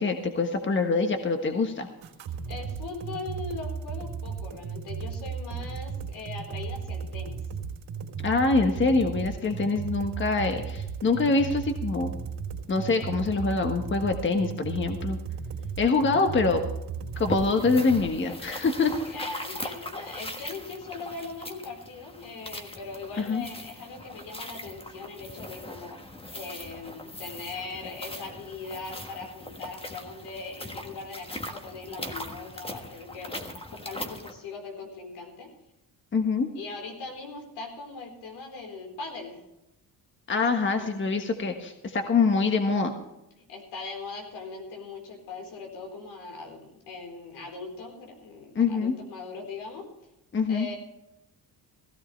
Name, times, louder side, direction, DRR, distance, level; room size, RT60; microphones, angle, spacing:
voice 1, 0.0-1.9 8.2-12.1 12.7-15.2 15.8-16.6 17.2-18.9 23.2-23.4 36.1-36.5 40.3-42.9 48.5-48.9 50.3-50.7, left 4 dB, 30° left, 5 dB, 1.4 m, -25 dB
sound 1, 2.0-18.0, right 6 dB, 70° right, 3.3 m, -35 dB
voice 2, 2.5-7.4 19.0-35.5 36.5-39.4 40.3-40.4 40.7-40.9 43.5-49.9 50.5-50.8, left 3 dB, 85° left, 2 dB, 4.4 m, -40 dB
sound 2, 17.1-34.3, left 1 dB, 15° left, 1.4 m, -40 dB
16.5 x 15.0 x 3.3 m, 0.90 s
cardioid pair, 110°, 39 cm